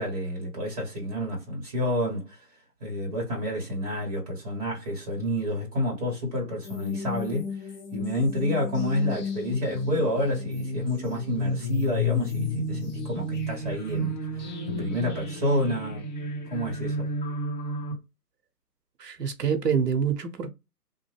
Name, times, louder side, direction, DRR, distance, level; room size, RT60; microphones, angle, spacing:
voice 1, 0.0-2.4 2.8-16.0 16.5-17.1, left 1 dB, 25° right, 0.9 m, -29 dB
sound 1, 6.6-17.9, left 2 dB, 30° left, 0.8 m, -32 dB
voice 2, 19.0-20.5, right 7 dB, 80° right, 0.7 m, -26 dB
2.8 x 2.1 x 3.1 m
figure-of-eight pair, 155°, 48 cm